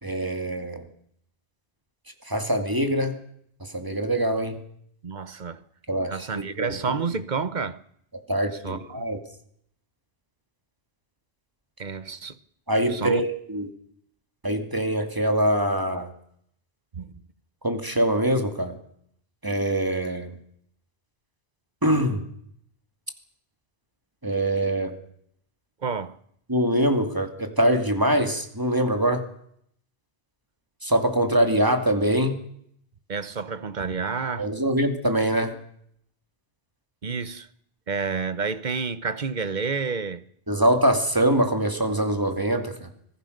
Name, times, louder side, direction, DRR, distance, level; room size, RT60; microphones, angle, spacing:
voice 1, 0.0-0.9 2.3-3.2 3.6-4.6 5.9-6.1 6.3-6.7 8.3-9.2 12.7-13.7 14.4-16.1 17.6-18.8 19.4-20.3 21.8-22.2 24.2-24.9 26.5-29.2 30.8-32.4 34.4-35.6 40.5-42.9, right 1 dB, 20° right, 2.5 m, -23 dB
voice 2, 5.0-5.6 6.1-7.8 8.6-9.1 11.8-12.4 12.9-13.2 16.9-17.2 25.8-26.2 33.1-34.5 37.0-37.5 37.9-40.2, right 5 dB, 45° right, 1.1 m, -29 dB
25.5 x 17.5 x 6.7 m
omnidirectional pair, 1.1 m